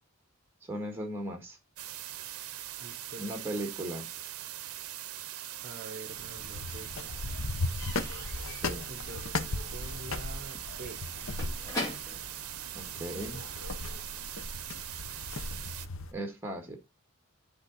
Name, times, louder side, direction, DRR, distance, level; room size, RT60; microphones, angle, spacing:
voice 1, 0.6-1.6 3.2-4.1 8.6-8.9 12.7-13.4 16.1-16.8, right 1 dB, 10° right, 1.7 m, -37 dB
sound 1, 1.8-15.9, right 13 dB, 75° right, 0.6 m, -41 dB
voice 2, 2.8-3.4 5.6-7.4 8.9-11.0, right 2 dB, 40° right, 0.9 m, -47 dB
Slam / Squeak / Wood, 5.5-6.4 6.6-13.4, left 1 dB, 15° left, 2.1 m, -43 dB
sound 2, 6.1-16.1, left 2 dB, 65° left, 0.8 m, -37 dB
10.0 x 3.8 x 4.1 m
head